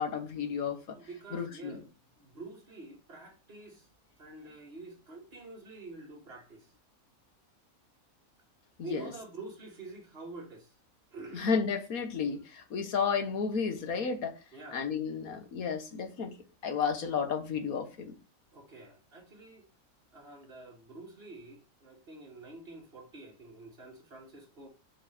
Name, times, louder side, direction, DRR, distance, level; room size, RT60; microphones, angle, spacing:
voice 1, 0.0-1.0 1.3-1.8 8.8-9.1 11.3-14.3 14.7-16.4 16.6-18.1, left 6 dB, 80° left, 1.7 m, -32 dB
voice 2, 0.9-3.9 4.2-6.7 8.8-10.7 11.1-11.5 14.5-14.9 18.5-19.7 20.1-24.7, right 3 dB, 45° right, 2.1 m, -47 dB
5.5 x 5.1 x 5.1 m
omnidirectional pair, 1.5 m